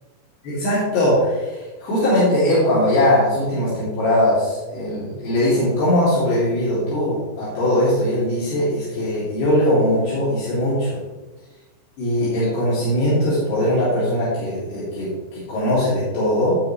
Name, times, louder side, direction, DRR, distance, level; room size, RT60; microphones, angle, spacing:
voice 1, 0.4-11.0 12.0-16.5, left 1 dB, 75° left, -10 dB, 5.1 m, -20 dB
17.0 x 5.9 x 3.3 m, 1.2 s
omnidirectional pair, 4.8 m